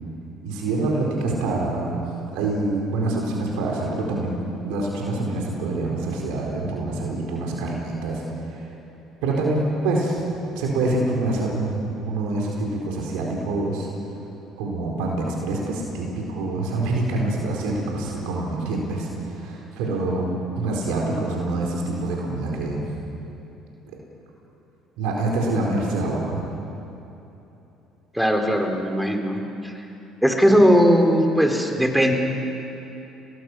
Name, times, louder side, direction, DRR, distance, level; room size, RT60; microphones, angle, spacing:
voice 1, 0.4-2.0 2.3-8.7 9.2-10.2 10.5-13.9 14.6-20.3 20.5-22.9 25.0-26.4, right 2 dB, 75° right, -1 dB, 4.4 m, -26 dB
voice 2, 28.1-29.8 30.2-32.1, equal, 5° right, 3 dB, 3.8 m, -19 dB
27.5 x 19.0 x 6.3 m, 3.0 s
hypercardioid pair, 65°, 0 cm